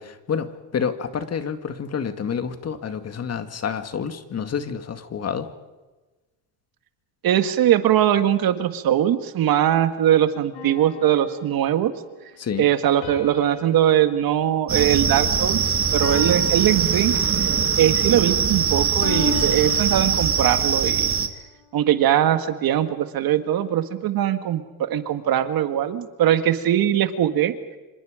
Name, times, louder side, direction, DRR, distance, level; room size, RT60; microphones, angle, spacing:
voice 1, 0.0-5.5 12.4-12.7, left 7 dB, 35° left, 9 dB, 2.1 m, -28 dB
voice 2, 7.2-11.9 12.6-17.1 17.8-21.1 21.7-27.5, right 11 dB, 55° right, 9 dB, 2.0 m, -21 dB
sound 1, 10.5-12.0 13.0-15.5 16.0-17.6 19.0-20.7, left 6 dB, 80° left, 4.7 m, -37 dB
sound 2, 14.7-21.3, right 6 dB, 30° right, 1.9 m, -22 dB
27.5 x 26.0 x 5.1 m, 1.2 s
supercardioid pair, 100°, 41 cm